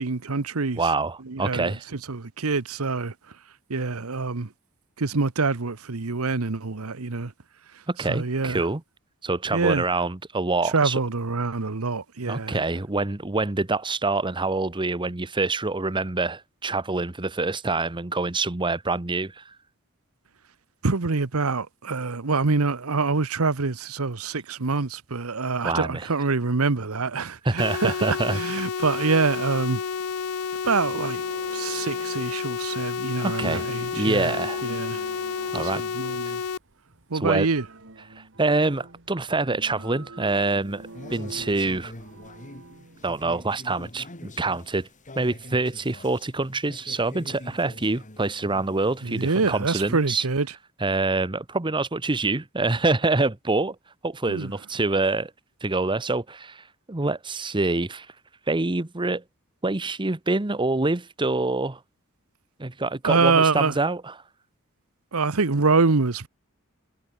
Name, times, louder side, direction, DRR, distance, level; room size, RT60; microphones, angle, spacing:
voice 1, 0.0-0.8 1.3-1.7 2.1-3.1 3.7-4.5 5.0-7.3 8.1-8.6 9.5-9.9 10.7-12.6 20.8-29.8 30.6-31.2 31.5-34.3 34.6-35.0 35.5-36.4 37.1-37.6 49.0-50.5 54.3-54.5 63.0-63.7 65.1-66.3, right 4 dB, 80° right, 1.0 m, -25 dB
voice 2, 0.8-1.9 7.9-8.8 9.2-11.0 12.3-19.5 25.6-26.1 27.4-28.4 28.8-29.1 33.2-34.6 35.5-35.8 37.1-37.5 38.2-41.9 43.0-44.9 45.2-50.2 50.8-53.8 54.0-55.3 55.6-58.1 58.5-59.2 59.6-61.8 62.6-64.1, right 3 dB, 20° right, 1.0 m, -26 dB
sound 1, 27.6-36.6, left 6 dB, 85° left, 0.6 m, -30 dB
sound 2, 30.8-43.4, right 2 dB, 60° right, 2.5 m, -46 dB
sound 3, 40.5-49.6, left 1 dB, 35° left, 4.1 m, -45 dB
head